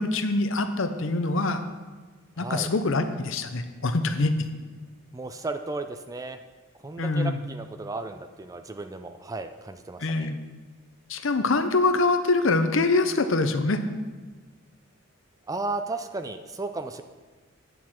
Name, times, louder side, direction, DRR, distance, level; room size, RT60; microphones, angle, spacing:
voice 1, 0.0-1.6 2.4-4.3 7.0-7.4 10.0-10.4 11.1-13.8, left 3 dB, 65° left, 9 dB, 0.7 m, -24 dB
voice 2, 2.4-2.7 5.1-6.4 6.7-10.3 15.5-17.0, right 3 dB, 15° right, 8 dB, 0.3 m, -34 dB
9.4 x 8.4 x 4.4 m, 1.4 s
head